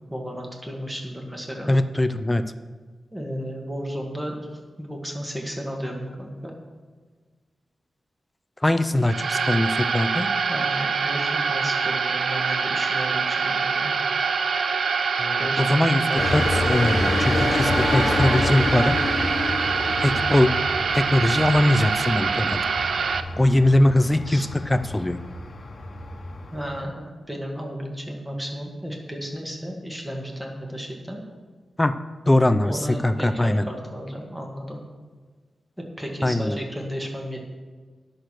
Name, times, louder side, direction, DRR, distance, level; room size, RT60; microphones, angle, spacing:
voice 1, 0.1-1.7 3.1-6.5 10.5-13.9 15.4-16.7 20.1-20.4 24.3-24.5 26.5-31.2 32.6-34.8 36.0-37.4, equal, 10° right, 0 dB, 1.9 m, -34 dB
voice 2, 1.7-2.4 8.6-10.3 15.2-19.0 20.0-20.5 20.9-22.6 23.4-25.2 31.8-31.9 32.3-33.7 36.2-36.6, left 1 dB, 15° left, 10 dB, 0.5 m, -21 dB
sound 1, 9.0-23.2, right 5 dB, 70° right, 0.5 m, -25 dB
sound 2, 16.1-26.8, left 2 dB, 50° left, 1.2 m, -28 dB
10.0 x 6.4 x 6.0 m, 1.4 s
wide cardioid pair, 105°, 0 cm